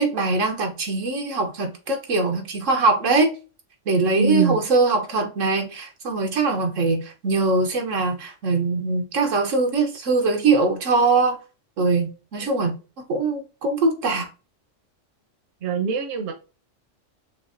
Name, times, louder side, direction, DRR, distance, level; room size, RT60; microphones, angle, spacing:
voice 1, 0.0-3.3 3.9-11.4 11.8-12.8 13.1-14.3, right 3 dB, 90° right, 1.4 m, -22 dB
voice 2, 4.1-4.6 15.6-16.3, right 5 dB, 65° right, 1.1 m, -23 dB
6.3 x 2.5 x 2.5 m
omnidirectional pair, 1.3 m